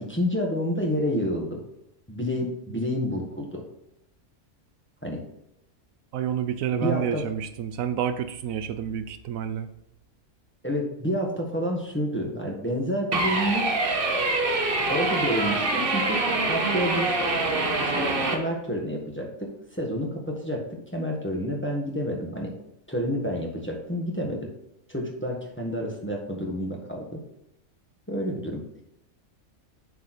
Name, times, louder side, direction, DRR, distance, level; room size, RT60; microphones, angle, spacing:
voice 1, 0.0-1.6 2.1-3.6 5.0-5.2 6.7-7.2 10.6-13.7 14.9-17.1 17.8-20.6 20.9-22.5 22.9-24.5 24.9-27.2 28.1-28.6, equal, 10° left, 0 dB, 1.2 m, -29 dB
voice 2, 6.1-9.7, right 9 dB, 80° right, 10 dB, 1.0 m, -29 dB
sound 1, 13.1-18.4, right 2 dB, 45° right, 1.2 m, -25 dB
8.1 x 4.8 x 4.2 m, 0.81 s
omnidirectional pair, 1.5 m